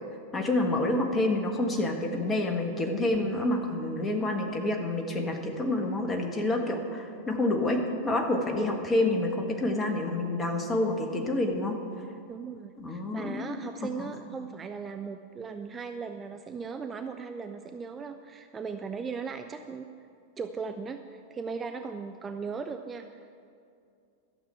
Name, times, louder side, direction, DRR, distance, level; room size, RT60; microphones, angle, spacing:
voice 1, 0.3-11.8 12.8-13.6 14.0-14.1, left 2 dB, 20° left, 3 dB, 1.5 m, -28 dB
voice 2, 12.3-19.9 20.4-23.1, right 5 dB, 20° right, 7 dB, 0.5 m, -38 dB
12.5 x 7.1 x 8.7 m, 2.4 s
figure-of-eight pair, 90°, 0 cm